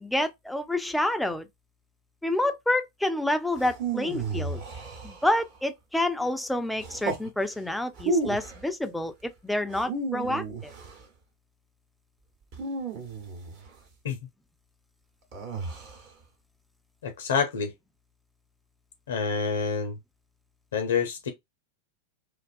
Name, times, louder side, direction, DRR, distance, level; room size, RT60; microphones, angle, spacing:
voice 1, 0.0-1.5 2.2-4.6 5.0-10.7, left 1 dB, 5° left, 0.4 m, -28 dB
sound 1, 3.6-5.6 6.8-7.3 7.9-8.6 9.7-11.0 12.5-13.7 15.3-16.1, right 3 dB, 45° right, 1.0 m, -33 dB
voice 2, 17.0-17.7 19.1-20.0 20.7-21.3, left 6 dB, 65° left, 0.5 m, -27 dB
2.5 x 2.2 x 2.4 m
figure-of-eight pair, 90°, 0 cm